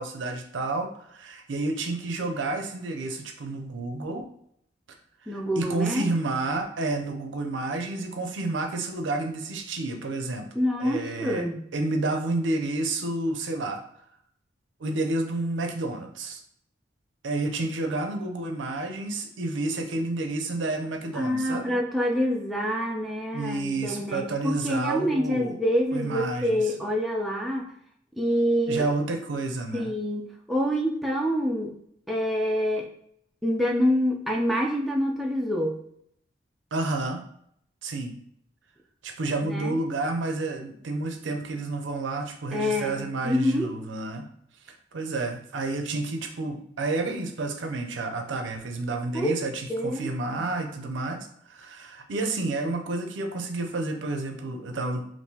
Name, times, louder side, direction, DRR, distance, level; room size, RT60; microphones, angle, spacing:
voice 1, 0.0-4.3 5.3-10.5 10.8-13.8 14.8-16.4 17.2-21.7 23.3-25.6 25.9-26.7 28.7-29.9 36.7-37.2 37.8-38.1 39.0-44.3 44.6-55.0, right 2 dB, 80° right, 5 dB, 0.5 m, -30 dB
voice 2, 5.3-6.1 10.6-11.6 21.2-27.7 28.2-28.9 29.7-31.7 32.1-32.9 33.4-35.8 39.4-39.8 42.5-43.7 49.1-49.3 49.7-50.1, equal, ahead, -1 dB, 0.4 m, -26 dB
3.6 x 2.6 x 2.8 m, 0.70 s
head